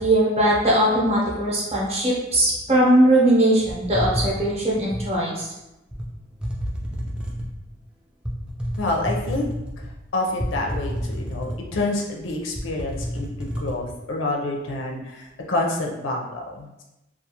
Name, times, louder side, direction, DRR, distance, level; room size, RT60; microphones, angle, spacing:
voice 1, 0.0-5.5, right 1 dB, 30° right, -5 dB, 0.7 m, -20 dB
sound 1, 3.7-5.1 5.9-6.1 6.4-7.6 8.2-9.9 10.4-11.8 12.2-12.3 12.6-13.8, equal, 5° right, 0.3 m, -29 dB
voice 2, 8.8-9.5 10.1-16.8, left 2 dB, 75° left, 0 dB, 0.5 m, -28 dB
2.3 x 2.3 x 2.8 m, 0.95 s
head